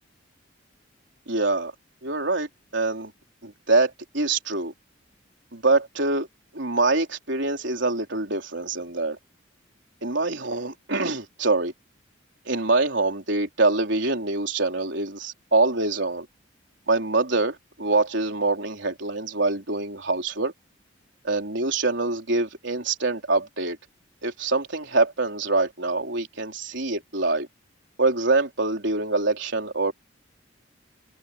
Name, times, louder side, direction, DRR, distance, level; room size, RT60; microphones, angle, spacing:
voice 1, 1.3-1.7 2.0-2.5 2.7-3.1 3.4-4.7 5.5-6.3 6.5-9.2 10.0-11.7 12.5-16.3 16.9-20.5 21.2-23.8 24.2-27.5 28.0-29.9, right 3 dB, 65° right, 4.0 m, -24 dB
head